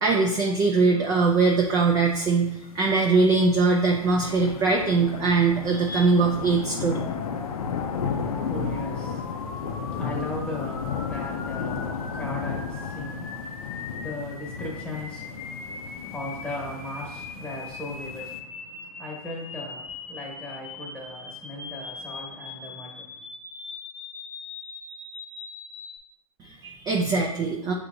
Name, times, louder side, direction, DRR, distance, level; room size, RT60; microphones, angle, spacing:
voice 1, 0.0-7.0 26.4-27.7, right 4 dB, 20° right, 0 dB, 0.4 m, -22 dB
sound 1, 1.2-18.4, left 6 dB, 75° left, 0.6 m, -34 dB
sound 2, 7.0-26.0, left 4 dB, 40° left, 0.7 m, -40 dB
voice 2, 8.2-23.2, left 1 dB, 5° left, -3 dB, 1.3 m, -38 dB
6.6 x 2.9 x 2.6 m, 0.84 s
hypercardioid pair, 130°, 19 cm